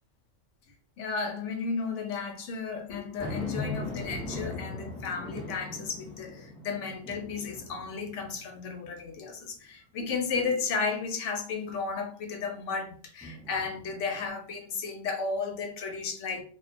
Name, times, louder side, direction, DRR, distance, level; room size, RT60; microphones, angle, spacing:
voice 1, 1.0-16.4, left 5 dB, 75° left, 0.9 m, -33 dB
sound 1, 3.2-8.7 9.2-9.3 13.2-14.3, left 2 dB, 5° left, 0.7 m, -39 dB
2.2 x 2.1 x 2.5 m
omnidirectional pair, 1.3 m